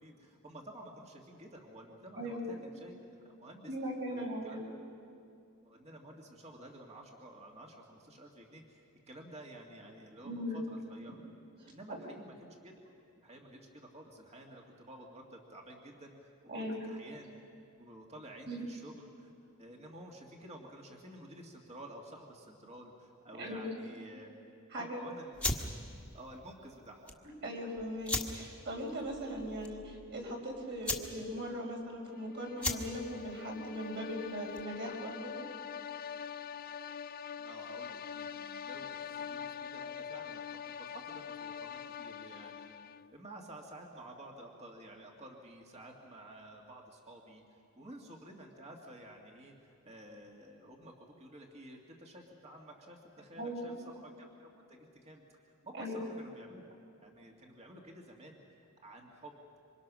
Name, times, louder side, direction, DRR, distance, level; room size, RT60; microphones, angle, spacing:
voice 1, 0.0-2.9 3.2-3.7 4.1-4.6 5.6-11.2 11.6-12.7 13.2-16.3 16.8-17.3 17.8-19.3 19.6-24.3 24.8-25.6 26.1-27.2 37.4-38.9 39.1-40.6 40.9-42.7 43.1-56.6 57.0-58.4 58.8-59.3, right 1 dB, 30° right, 0 dB, 2.2 m, -52 dB
voice 2, 2.2-2.5 3.7-4.7 10.2-10.6 11.6-12.0 16.5-16.9 18.5-18.6 23.4-23.9 24.7-25.0 27.4-35.3 53.4-53.8 55.7-56.1, equal, 55° right, 0 dB, 5.2 m, -39 dB
sound 1, 25.3-34.8, left 2 dB, 5° left, 1.7 m, -40 dB
sound 2, 32.2-43.2, left 7 dB, 45° left, 0.5 m, -44 dB
27.0 x 25.5 x 6.3 m, 2.5 s
head